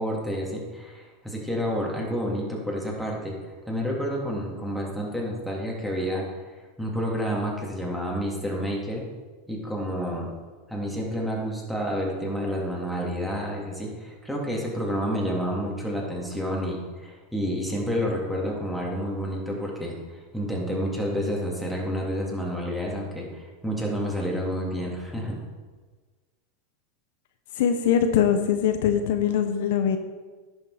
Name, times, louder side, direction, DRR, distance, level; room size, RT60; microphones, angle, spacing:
voice 1, 0.0-3.3 3.7-6.4 6.8-9.1 9.5-10.3 10.7-25.4, equal, ahead, -2 dB, 2.7 m, -29 dB
voice 2, 27.6-30.0, left 8 dB, 70° left, 7 dB, 0.8 m, -22 dB
10.5 x 6.5 x 4.9 m, 1.4 s
hypercardioid pair, 105°, 0 cm